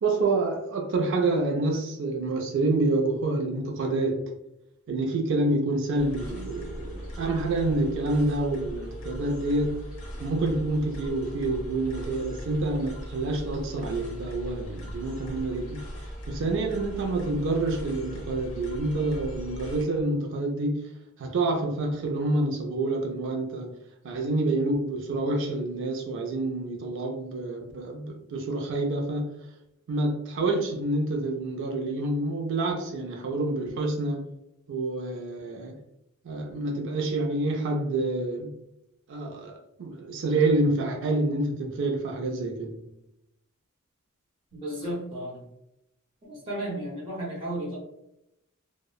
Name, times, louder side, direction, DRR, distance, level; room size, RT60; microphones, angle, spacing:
voice 1, 0.0-4.3 4.9-9.9 10.2-20.9 21.2-23.7 24.0-29.3 29.9-34.3 34.7-35.8 36.2-38.5 39.1-42.9, right 2 dB, 60° right, 0.4 m, -28 dB
sound 1, 5.9-19.8, equal, 85° left, 0.7 m, -39 dB
voice 2, 44.5-45.5 46.2-47.8, right 1 dB, 25° right, 0.7 m, -34 dB
2.7 x 2.0 x 2.2 m
head